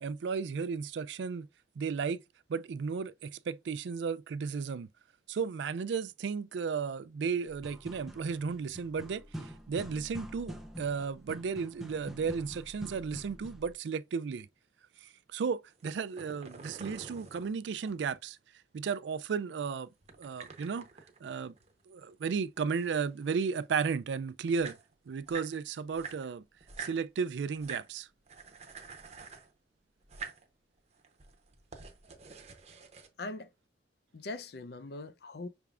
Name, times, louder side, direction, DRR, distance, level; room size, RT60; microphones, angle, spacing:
voice 1, 0.0-1.5 1.8-2.2 2.5-4.9 5.3-14.5 15.0-18.4 18.7-19.9 20.2-20.8 21.2-21.5 21.9-24.8 25.1-26.4 26.8-28.1, right 5 dB, 75° right, 0.4 m, -34 dB
sound 1, 7.6-13.7, equal, ahead, 0.5 m, -46 dB
sound 2, 15.7-18.2 20.0-22.1 22.4-23.6 24.2-24.3 24.4-25.5 25.9-27.0 27.5-27.9 28.3-29.5 30.0-30.5 31.0-33.1, right 5 dB, 40° right, 0.7 m, -47 dB
voice 2, 33.2-33.5 34.1-35.5, left 2 dB, 60° left, 0.5 m, -41 dB
5.8 x 3.5 x 2.4 m
head